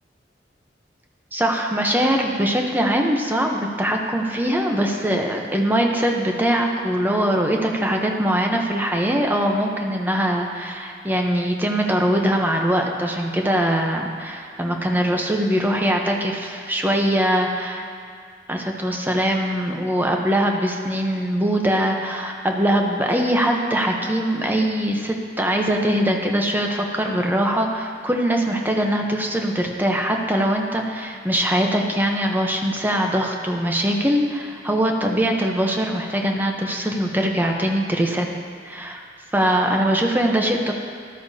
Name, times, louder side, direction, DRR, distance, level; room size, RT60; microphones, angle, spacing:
voice 1, 1.3-17.9 18.5-38.3 38.6-39.0 39.3-40.7, equal, 10° right, 1 dB, 0.8 m, -22 dB
13.0 x 12.0 x 2.8 m, 2.1 s
head